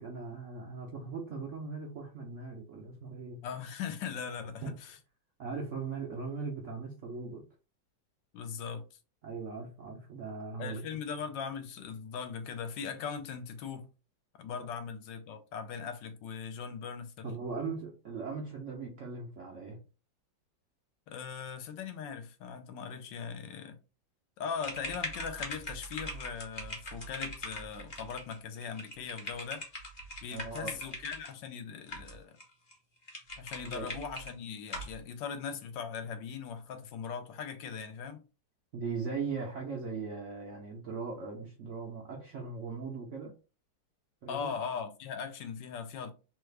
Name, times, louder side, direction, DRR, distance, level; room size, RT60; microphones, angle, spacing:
voice 1, 0.0-3.4 4.6-4.7 5.4-7.4 9.2-10.8 17.2-19.8 30.3-30.8 33.7-33.9 38.7-43.3 44.2-44.5, right 4 dB, 70° right, 0.7 m, -39 dB
voice 2, 3.4-5.0 8.3-9.0 10.6-13.9 14.4-17.3 21.1-23.8 24.4-29.6 30.2-32.4 33.4-38.2 44.3-46.1, left 6 dB, 80° left, 1.2 m, -40 dB
sound 1, 24.6-31.3 31.9-32.4 32.7-32.8 33.1-34.3 34.7-34.9, left 1 dB, 35° left, 0.7 m, -41 dB
3.1 x 2.3 x 3.2 m
omnidirectional pair, 2.0 m